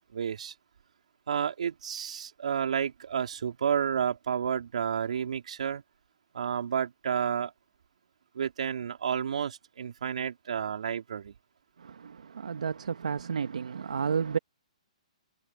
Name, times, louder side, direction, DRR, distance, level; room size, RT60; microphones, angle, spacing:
voice 1, 0.1-0.5 1.3-5.8 6.3-7.5 8.3-11.3, right 8 dB, 70° right, 4.0 m, -31 dB
voice 2, 11.8-14.4, right 6 dB, 90° right, 1.6 m, -32 dB
hypercardioid pair, 160°, 4 cm